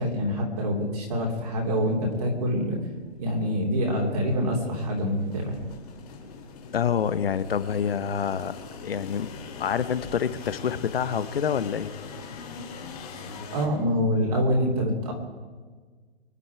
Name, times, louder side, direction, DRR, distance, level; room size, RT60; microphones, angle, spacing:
voice 1, 0.0-2.8 3.2-5.6 13.2-15.1, equal, 35° right, -1 dB, 3.0 m, -26 dB
sound 1, 1.5-1.6 2.3-2.4 3.0-3.5 4.3-13.7, left 5 dB, 35° left, 3.0 m, -42 dB
voice 2, 6.7-8.6 8.8-9.3 9.6-11.9, left 7 dB, 60° left, 12 dB, 1.1 m, -27 dB
24.5 x 11.0 x 4.7 m, 1.5 s
hypercardioid pair, 175°, 33 cm